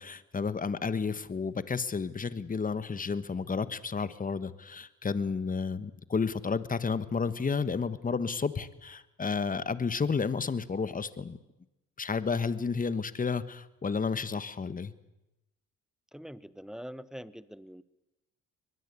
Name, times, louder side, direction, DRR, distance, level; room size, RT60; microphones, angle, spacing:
voice 1, 0.0-11.4 12.0-14.9, left 5 dB, 25° left, 14 dB, 1.3 m, -31 dB
voice 2, 16.1-17.8, equal, ahead, 17 dB, 0.9 m, -44 dB
22.5 x 20.5 x 8.4 m, 0.96 s
cardioid pair, 90°, 30 cm